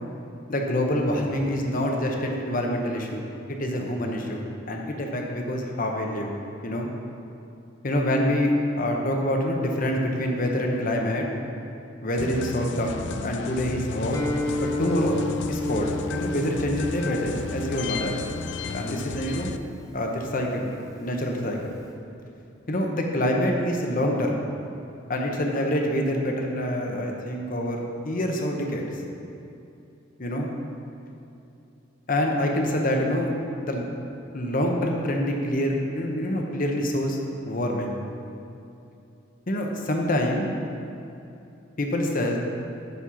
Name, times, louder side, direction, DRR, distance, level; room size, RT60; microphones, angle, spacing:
voice 1, 0.5-3.2 3.5-6.4 6.6-6.9 7.8-11.3 12.0-14.2 14.8-15.2 15.5-18.2 18.7-19.5 19.9-20.7 21.0-21.6 22.7-24.4 25.1-28.9 30.2-30.5 32.1-33.3 33.6-33.9 34.3-37.2 37.4-37.9 39.5-40.5 41.8-42.4, equal, 45° left, 1 dB, 0.9 m, -26 dB
sound 1, 12.2-19.6, left 5 dB, 60° left, 0.3 m, -34 dB
Guitar, 14.1-21.9, left 2 dB, 15° left, 0.6 m, -33 dB
9.5 x 4.4 x 5.7 m, 2.7 s
head